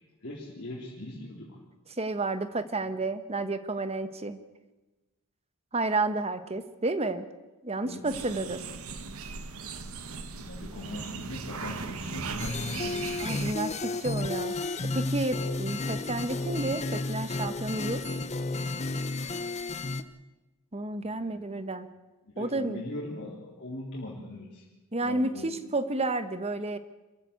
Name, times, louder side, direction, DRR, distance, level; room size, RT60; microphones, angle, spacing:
voice 1, 0.2-1.6 7.8-8.5 10.4-13.1 20.9-21.7 22.2-24.6 25.0-25.5, left 1 dB, 55° left, -5 dB, 3.7 m, -41 dB
voice 2, 2.0-4.4 5.7-7.3 7.6-8.6 13.2-14.6 14.8-18.0 20.7-21.9 22.4-22.8 24.9-26.8, right 2 dB, 30° right, 11 dB, 1.2 m, -31 dB
sound 1, 8.0-13.5, right 4 dB, 70° right, 1.3 m, -38 dB
sound 2, 12.4-20.0, left 2 dB, 30° left, 0.9 m, -32 dB
26.5 x 14.5 x 8.2 m, 1.1 s
head